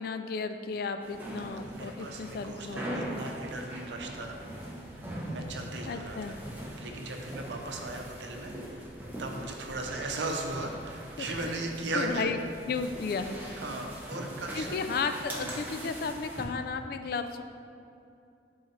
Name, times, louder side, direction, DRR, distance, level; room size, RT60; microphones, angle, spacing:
voice 1, 0.0-3.1 5.9-6.3 11.2-11.3 11.9-12.4 12.7-13.4 14.6-17.4, left 4 dB, 55° left, 9 dB, 0.3 m, -34 dB
sound 1, 1.0-16.4, right 1 dB, 10° right, 0.8 m, -41 dB
voice 2, 1.7-4.4 5.0-6.4 6.8-8.9 9.2-12.3 13.2-14.9 15.4-15.5, right 2 dB, 80° right, 2 dB, 0.7 m, -37 dB
7.7 x 3.9 x 3.1 m, 2.5 s
head